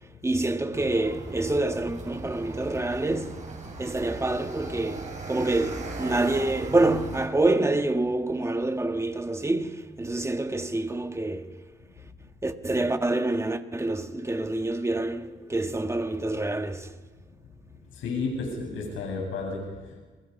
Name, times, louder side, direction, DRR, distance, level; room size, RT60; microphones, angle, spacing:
voice 1, 0.2-3.4 3.8-11.6 12.4-16.9, right 2 dB, 15° right, 1.7 m, -27 dB
sound 1, 0.7-7.3, right 3 dB, 35° right, 6.8 m, -38 dB
voice 2, 17.9-20.0, left 3 dB, 85° left, 7.7 m, -32 dB
30.0 x 23.0 x 5.6 m
cardioid pair, 90°, 20 cm